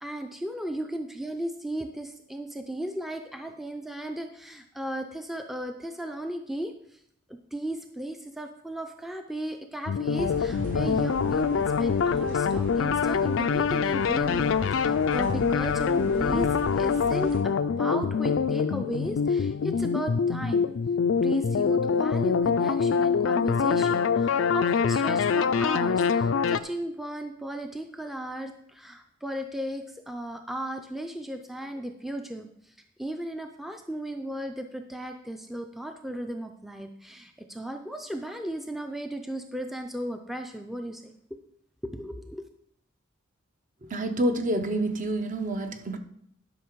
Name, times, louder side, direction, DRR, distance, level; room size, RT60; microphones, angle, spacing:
voice 1, 0.0-7.0 7.3-16.5 16.7-20.7 21.2-32.7 33.0-41.1 41.8-42.4, right 1 dB, ahead, 0.5 m, -36 dB
sound 1, 9.9-26.6, left 6 dB, 70° left, 0.4 m, -25 dB
sound 2, 10.2-17.4, equal, 80° right, 2.5 m, -40 dB
voice 2, 43.8-46.0, right 1 dB, 40° right, 0.8 m, -28 dB
11.5 x 5.7 x 4.7 m
head